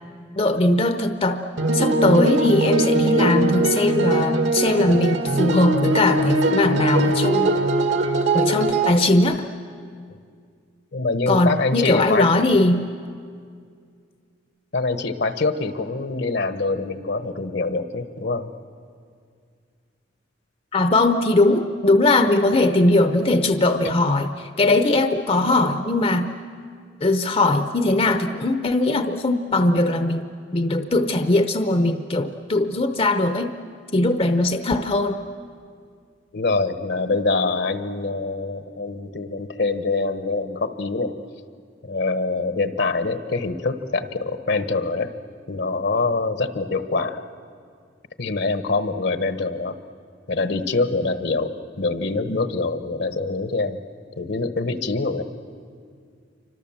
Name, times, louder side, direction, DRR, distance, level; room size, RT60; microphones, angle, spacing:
voice 1, 0.4-1.4 1.7-7.5 8.3-9.5 11.3-12.8 20.7-26.3 27.0-33.6 33.9-35.2, left 2 dB, 30° left, 8 dB, 0.8 m, -20 dB
sound 1, 1.6-8.9, right 2 dB, 75° right, 2.1 m, -21 dB
voice 2, 10.9-12.3 14.7-18.5 23.8-23.9 36.3-41.2 41.8-45.1 45.5-47.2 48.2-49.8 50.3-53.8 54.2-55.2, left 3 dB, 65° left, 10 dB, 1.2 m, -24 dB
27.5 x 25.0 x 7.4 m, 2.2 s
head